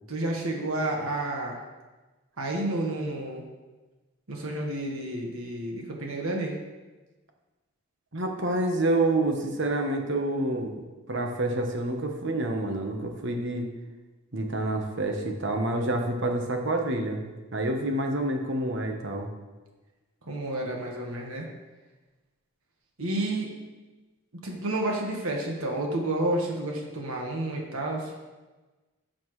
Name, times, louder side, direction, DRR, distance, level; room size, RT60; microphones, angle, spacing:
voice 1, 0.1-1.6 2.4-3.4 4.3-6.6 20.3-21.5 23.0-23.5 24.3-28.1, right 1 dB, 70° right, 0 dB, 1.5 m, -30 dB
voice 2, 8.1-13.7 14.3-19.3, right 2 dB, 55° right, 3 dB, 1.2 m, -28 dB
11.0 x 7.0 x 3.2 m, 1.2 s
head